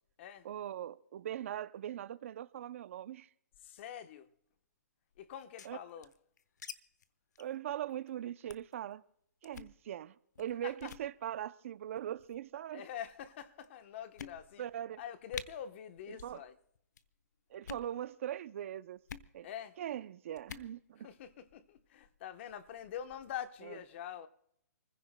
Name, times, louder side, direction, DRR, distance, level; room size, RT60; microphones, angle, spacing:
voice 1, 0.4-3.3 5.6-5.8 7.4-9.0 9.4-12.8 14.6-15.0 16.1-16.4 17.5-19.0 19.3-19.5 19.8-21.1 23.6-23.8, right 11 dB, 50° right, 0.5 m, -41 dB
voice 2, 3.6-4.3 5.2-6.1 10.6-10.9 12.7-14.6 15.0-16.6 19.4-19.8 21.0-24.3, left 9 dB, 40° left, 1.0 m, -45 dB
sound 1, 5.3-6.7 7.0-7.1 7.4-7.6 7.9-8.1 8.5-8.7 9.4-9.8 10.4-10.5 10.8-11.1 12.0-12.4 13.1-13.2 13.6-13.7 14.2-14.7 15.0-15.1 15.3-15.5 16.1-16.4 16.6-17.0 17.5-17.9 19.1-19.3 20.4-20.7, left 7 dB, 75° left, 1.0 m, -47 dB
29.0 x 15.5 x 2.2 m
hypercardioid pair, 155°, 9 cm